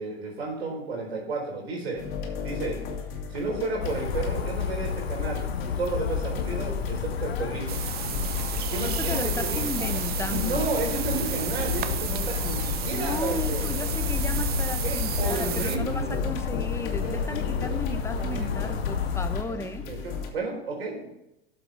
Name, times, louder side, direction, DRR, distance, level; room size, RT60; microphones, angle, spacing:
voice 1, 0.0-2.0 2.4-2.8 3.3-5.4 5.8-7.8 8.7-9.7 10.3-14.0 14.8-16.3 17.0-17.9 18.2-18.8 19.4-21.1, right 3 dB, 85° right, 0 dB, 4.0 m, -32 dB
sound 1, 2.0-20.3, left 6 dB, 60° left, 2.5 m, -36 dB
sound 2, 3.8-19.4, left 6 dB, 90° left, 0.8 m, -30 dB
sound 3, 7.7-15.8, right 10 dB, 30° right, 0.8 m, -33 dB
voice 2, 8.8-10.7 12.9-19.9, left 2 dB, 10° left, 9 dB, 0.8 m, -34 dB
12.5 x 7.4 x 3.4 m, 0.89 s
hypercardioid pair, 105°, 30 cm